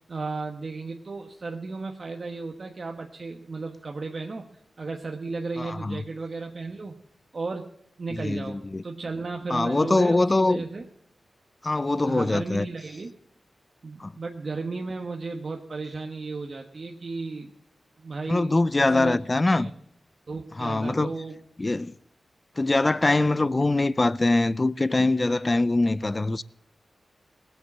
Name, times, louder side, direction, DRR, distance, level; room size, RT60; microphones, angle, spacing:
voice 1, 0.1-4.5 4.8-7.0 7.3-10.9 11.9-13.1 13.8-17.5 18.0-19.2 19.5-19.7 20.3-21.4 23.2-23.6, right 3 dB, 55° right, 1.2 m, -34 dB
voice 2, 5.6-6.0 8.2-8.8 9.5-10.6 11.6-12.6 14.0-14.1 18.3-19.7 20.6-21.1 21.6-21.9 22.6-26.4, left 2 dB, 35° left, 0.6 m, -23 dB
19.0 x 8.2 x 7.4 m
cardioid pair, 55°, 0 cm